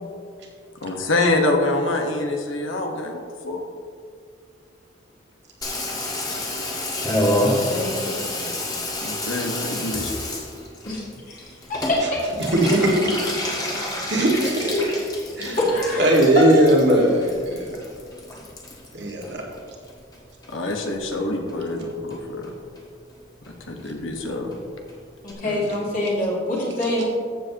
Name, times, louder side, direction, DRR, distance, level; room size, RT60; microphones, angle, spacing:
voice 1, 0.8-3.6 7.4-7.6 9.0-10.2 20.5-22.5 23.7-24.5 25.4-25.7, left 2 dB, 85° left, 2 dB, 1.3 m, -25 dB
Water tap faucet / Bathtub (filling or washing), 5.6-20.2 20.4-21.2 21.5-21.6 21.8-21.9 22.1-22.5 22.8-22.9 23.1-23.2 23.4-23.5 23.8-23.9 24.1-24.2 24.5-24.6 24.9-25.0 25.3-25.4, left 1 dB, 20° left, 1.5 m, -29 dB
voice 2, 7.4-8.5 10.9-11.0 11.3-12.2 14.6-16.2 25.2-27.1, left 1 dB, 45° left, -6 dB, 2.1 m, -26 dB
voice 3, 12.4-13.2 14.1-14.8 15.4-15.6 16.0-17.8 18.9-19.4, right 1 dB, 60° right, -2 dB, 1.9 m, -19 dB
14.0 x 7.6 x 2.9 m, 2.1 s
head